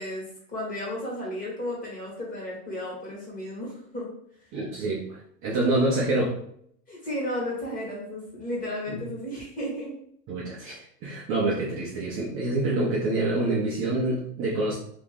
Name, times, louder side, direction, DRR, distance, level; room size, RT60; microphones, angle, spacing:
voice 1, 0.0-4.1 6.9-9.9, left 1 dB, 15° left, -4 dB, 1.3 m, -33 dB
voice 2, 4.5-6.4 8.9-9.0 10.3-14.8, right 2 dB, 30° right, -4 dB, 0.5 m, -27 dB
2.9 x 2.5 x 3.5 m, 0.67 s
supercardioid pair, 145°, 47 cm